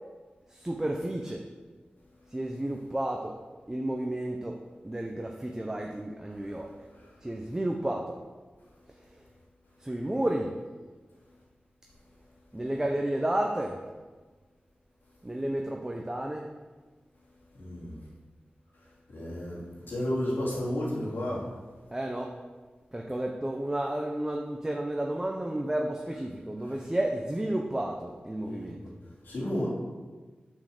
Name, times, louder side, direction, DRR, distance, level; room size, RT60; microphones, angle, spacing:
voice 1, 0.5-1.4 2.3-3.3 3.7-4.6 4.8-6.7 7.2-8.2 9.8-10.6 12.5-13.8 15.2-16.5 21.9-22.4 22.9-28.8, right 1 dB, 15° right, 1 dB, 0.8 m, -31 dB
voice 2, 17.5-18.0 19.1-19.6 19.9-21.4 26.6-26.8 28.4-28.7 29.2-29.7, left 1 dB, 90° left, -7 dB, 3.5 m, -32 dB
7.9 x 6.5 x 6.6 m, 1.3 s
wide cardioid pair, 100°, 3 cm